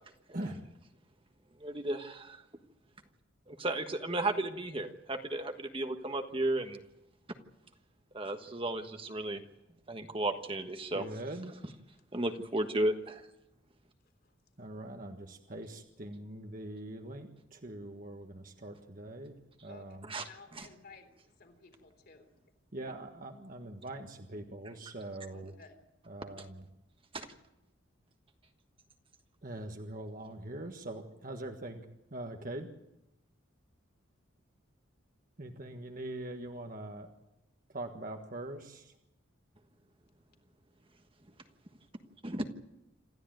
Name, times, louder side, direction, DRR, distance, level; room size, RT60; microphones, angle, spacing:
voice 1, 1.6-2.4 3.5-6.8 8.1-9.4 9.9-11.0 12.1-13.3 20.1-20.2 20.5-20.7 27.1-27.3 42.2-42.5, right 1 dB, 25° right, 6 dB, 1.4 m, -34 dB
voice 2, 10.9-11.6 14.6-19.4 19.6-20.1 22.7-25.5 26.1-26.6 29.4-31.8 32.1-32.7 35.4-37.1 37.7-38.9, right 1 dB, 45° right, 4 dB, 1.5 m, -42 dB
voice 3, 20.3-21.1 21.4-22.3 25.3-25.8, left 4 dB, 50° left, 5 dB, 3.7 m, -55 dB
27.5 x 14.0 x 9.2 m, 0.90 s
head